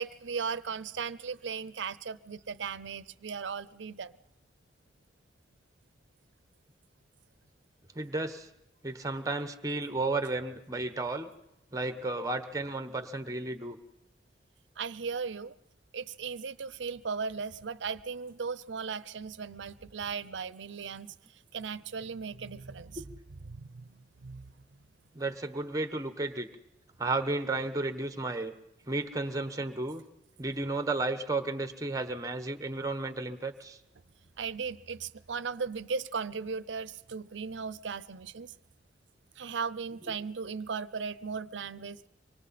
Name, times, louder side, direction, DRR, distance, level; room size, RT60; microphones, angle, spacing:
voice 1, 0.0-4.1 14.8-15.5 15.9-21.1 21.5-23.0 23.5-24.4 34.4-38.5 39.4-42.1, right 5 dB, 85° right, 17 dB, 0.6 m, -37 dB
voice 2, 7.9-8.5 8.8-11.3 11.7-13.8 23.0-23.1 25.1-26.5 27.0-28.5 28.8-30.0 30.4-33.8, right 2 dB, 20° right, 9 dB, 1.1 m, -33 dB
25.0 x 24.5 x 4.3 m, 0.87 s
head